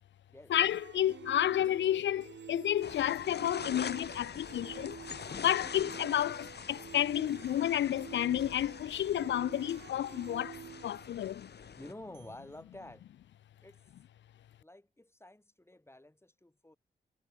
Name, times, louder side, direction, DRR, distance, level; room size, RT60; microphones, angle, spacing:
voice 1, 0.5-5.0 5.4-11.5, left 11 dB, 80° left, 0.5 m, -31 dB
sound 1, 0.6-12.4, right 8 dB, 75° right, 3.3 m, -49 dB
sound 2, 2.8-11.9, left 6 dB, 65° left, 2.6 m, -45 dB
voice 2, 11.8-13.1 13.6-13.8 14.6-16.8, left 1 dB, 15° left, 4.8 m, -50 dB
cardioid pair, 55°, 19 cm